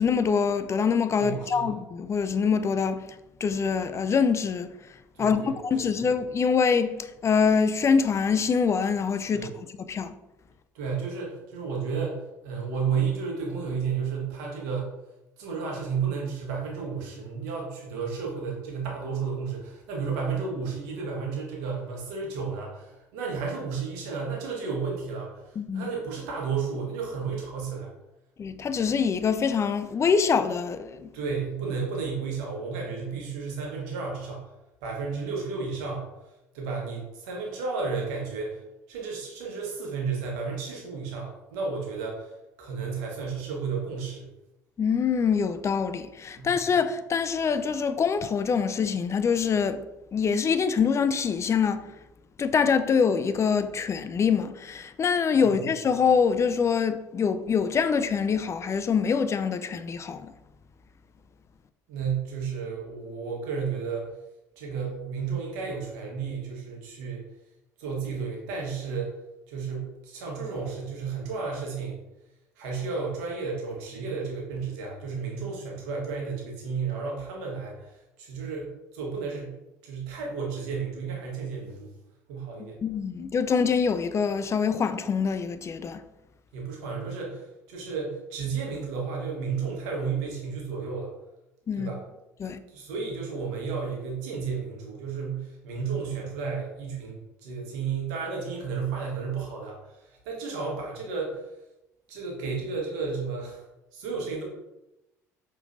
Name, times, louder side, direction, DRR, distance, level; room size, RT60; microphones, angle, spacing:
voice 1, 0.0-3.0 3.4-4.7 5.2-9.5 9.8-10.1 25.7-25.8 28.4-31.1 44.8-49.8 50.1-51.9 52.4-60.3 82.8-86.0 91.7-91.9 92.4-92.6, left 6 dB, 30° left, 0.4 m, -25 dB
voice 2, 1.2-1.7 5.1-5.5 9.3-9.5 10.7-14.9 15.4-27.9 31.1-34.4 34.8-36.0 36.5-38.6 38.9-42.3 42.6-44.3 46.4-46.5 55.4-55.7 61.9-64.1 64.6-67.2 67.8-69.1 69.5-72.0 72.6-77.9 78.2-79.6 79.8-81.9 82.3-82.8 86.5-91.1 91.8-92.0 92.7-101.4 102.1-103.6 103.9-104.4, right 5 dB, 75° right, 1.2 m, -32 dB
4.9 x 3.2 x 2.6 m
hypercardioid pair, 60°, 9 cm